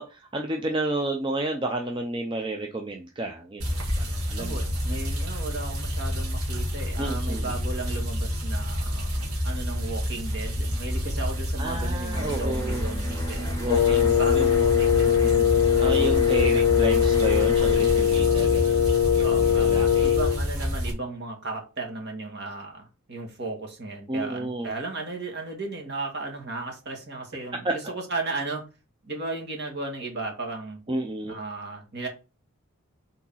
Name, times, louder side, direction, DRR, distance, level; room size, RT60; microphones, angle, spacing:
voice 1, 0.0-4.6 7.0-7.5 11.6-12.9 13.6-14.5 15.8-18.9 19.2-20.2 24.1-24.7 27.6-27.7 30.9-31.4, right 2 dB, 20° right, 3 dB, 0.5 m, -31 dB
sound 1, 3.6-20.9, equal, 85° right, 2.0 m, -29 dB
voice 2, 4.4-15.5 16.4-16.6 18.3-18.6 19.2-19.7 20.0-28.6 29.0-30.8 31.3-32.1, right 3 dB, 50° right, 2 dB, 1.9 m, -35 dB
sound 2, 12.1-18.3, equal, 15° left, 1.9 m, -37 dB
Wind instrument woodwind instrument, 13.7-20.4, left 9 dB, 80° left, 0.3 m, -21 dB
4.9 x 4.0 x 5.5 m, 0.31 s
head